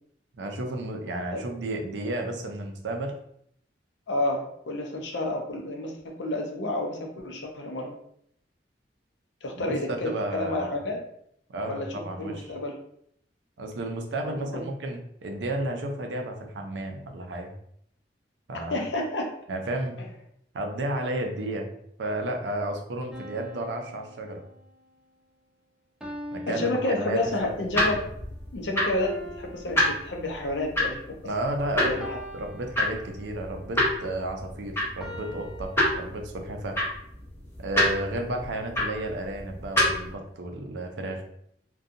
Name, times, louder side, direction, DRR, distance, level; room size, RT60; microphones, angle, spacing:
voice 1, 0.4-3.1 9.6-10.8 11.5-12.5 13.6-17.5 18.5-18.8 19.5-20.0 20.5-21.7 22.0-24.4 26.3-27.5 31.2-36.8 37.6-41.2, right 1 dB, 85° right, 3 dB, 0.5 m, -32 dB
voice 2, 4.1-8.0 9.4-11.0 11.7-11.9 12.2-12.8 14.2-14.6 18.7-19.3 26.5-28.0 28.5-31.2 31.8-32.2, left 1 dB, 80° left, 2 dB, 0.6 m, -30 dB
sound 1, 23.1-24.9 26.0-27.6 29.0-30.7 32.0-33.5 35.0-35.8, equal, 5° right, 0.4 m, -43 dB
sound 2, 27.2-40.1, left 1 dB, 15° left, 0.8 m, -29 dB
2.6 x 2.2 x 2.5 m, 0.71 s
head